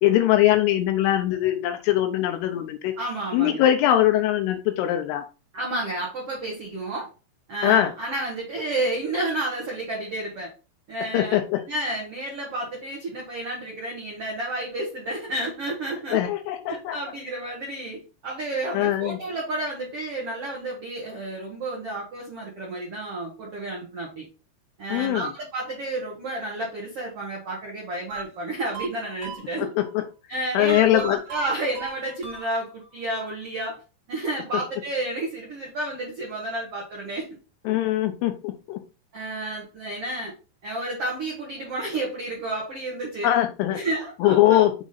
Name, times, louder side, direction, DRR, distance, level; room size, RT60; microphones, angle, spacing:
voice 1, 0.0-3.0 3.3-5.2 7.6-7.9 11.1-11.6 16.1-17.0 18.7-19.2 24.9-25.3 29.6-30.0 30.5-31.2 37.7-38.8 43.2-43.8 44.2-44.7, left 13 dB, 80° left, 6 dB, 2.6 m, -21 dB
voice 2, 3.0-3.6 5.5-7.1 7.5-10.5 10.9-11.3 11.7-16.2 16.7-24.2 24.8-29.7 30.3-33.8 34.1-37.3 39.1-40.3 40.6-43.3 43.7-44.7, right 2 dB, 65° right, -2 dB, 1.4 m, -31 dB
sound 1, 28.1-29.9 30.7-32.9, right 6 dB, 50° right, 2.9 m, -38 dB
7.0 x 3.6 x 4.0 m, 0.33 s
omnidirectional pair, 5.0 m